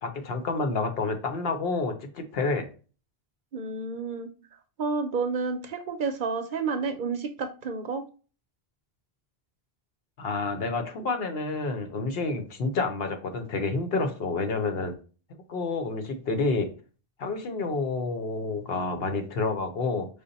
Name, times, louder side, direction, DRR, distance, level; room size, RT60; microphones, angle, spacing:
voice 1, 0.0-2.7 10.2-15.0 15.5-16.7 17.2-20.1, left 3 dB, 70° left, 6 dB, 1.0 m, -29 dB
voice 2, 3.5-4.3 4.8-8.0, right 4 dB, 60° right, 6 dB, 0.7 m, -30 dB
5.1 x 2.1 x 3.9 m, 0.36 s
omnidirectional pair, 1.0 m